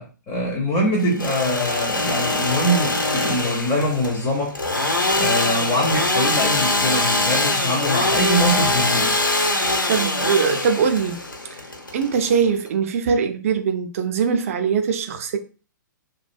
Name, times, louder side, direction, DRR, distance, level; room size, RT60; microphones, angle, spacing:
voice 1, 0.0-4.6 5.2-9.2, equal, 20° left, 0.4 m, -23 dB
Engine / Sawing, 1.0-12.7, left 2 dB, 85° left, 0.5 m, -23 dB
voice 2, 9.5-11.2 11.5-11.6 11.9-15.4, right 6 dB, 45° right, 0.4 m, -22 dB
2.4 x 2.1 x 2.5 m
figure-of-eight pair, 120°, 11 cm